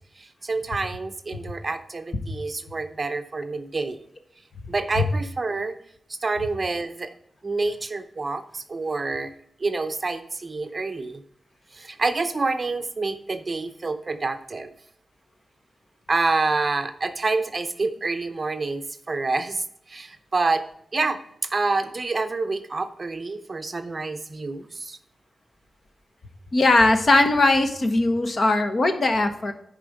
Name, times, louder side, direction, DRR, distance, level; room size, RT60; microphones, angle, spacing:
voice 1, 0.2-4.0 4.7-5.7 6.2-7.1 7.4-9.3 9.6-11.2 11.7-14.7 16.1-20.6 20.9-21.2 21.5-25.0, right 3 dB, 35° right, 9 dB, 0.7 m, -27 dB
voice 2, 26.5-29.5, left 2 dB, 45° left, 7 dB, 1.1 m, -19 dB
10.0 x 5.0 x 4.9 m, 0.73 s
wide cardioid pair, 140°, 0 cm